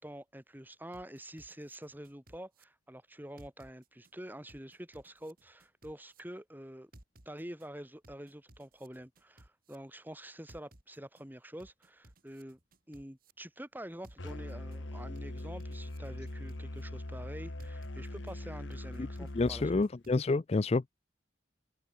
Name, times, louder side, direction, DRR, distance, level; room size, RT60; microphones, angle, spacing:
voice 1, 0.0-6.9 7.2-12.6 12.9-19.6, right 1 dB, 10° right, 3.1 m, -47 dB
sound 1, 0.9-2.6 3.4-4.1 4.5-6.2 6.9-7.7 8.0-9.8 10.5-11.2 11.6-13.3 14.0-14.8 15.2-16.8 17.6-18.3 18.7-20.2, right 1 dB, 50° right, 3.4 m, -59 dB
Musical instrument, 14.2-19.9, left 1 dB, 75° left, 1.6 m, -41 dB
voice 2, 19.3-20.9, left 3 dB, 35° left, 0.4 m, -28 dB
open air
head